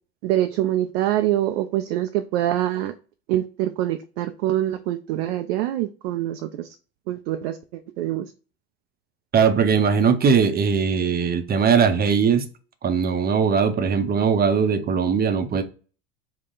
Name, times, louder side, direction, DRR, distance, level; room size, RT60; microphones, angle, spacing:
voice 1, 0.2-2.9 3.3-6.8 7.1-8.3, right 13 dB, 70° right, 0.4 m, -25 dB
voice 2, 9.3-12.5 12.8-15.6, right 6 dB, 30° right, 0.6 m, -20 dB
3.8 x 2.2 x 3.8 m
hypercardioid pair, 80°, 33 cm